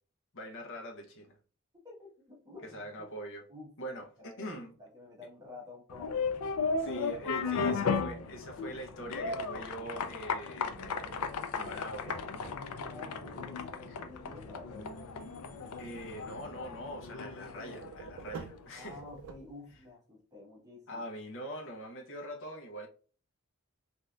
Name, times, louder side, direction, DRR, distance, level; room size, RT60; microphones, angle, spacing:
voice 1, 0.3-1.4 2.6-3.5 3.8-4.7 6.8-11.1 11.5-12.2 13.9-14.0 15.8-19.0 20.9-22.9, equal, 60° left, 0.8 m, -43 dB
voice 2, 1.7-3.0 3.5-3.7 4.2-6.3 7.3-8.3 12.7-14.9 18.7-21.0, left 2 dB, 15° right, 1.2 m, -50 dB
sound 1, 5.9-18.6, left 5 dB, 80° left, 0.4 m, -36 dB
sound 2, 10.7-13.1 17.6-19.9, right 5 dB, 75° right, 0.4 m, -48 dB
3.2 x 2.7 x 2.3 m
head